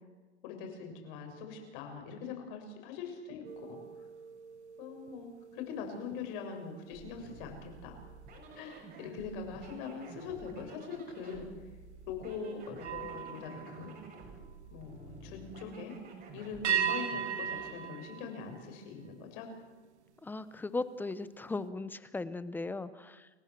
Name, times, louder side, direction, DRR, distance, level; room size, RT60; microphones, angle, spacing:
voice 1, 0.4-3.8 4.8-8.0 8.5-11.5 12.1-13.9 14.7-15.9 16.3-19.5, left 5 dB, 50° left, 4 dB, 6.8 m, -42 dB
sound 1, 3.4-9.0 9.5-9.8 12.7-14.9 16.6-19.2, right 8 dB, 90° right, 2.4 m, -39 dB
sound 2, 6.9-17.7, right 3 dB, 25° right, 6.2 m, -51 dB
voice 2, 20.2-23.3, left 3 dB, 5° left, 15 dB, 0.8 m, -37 dB
29.5 x 16.0 x 7.5 m, 1.3 s
hypercardioid pair, 135°, 33 cm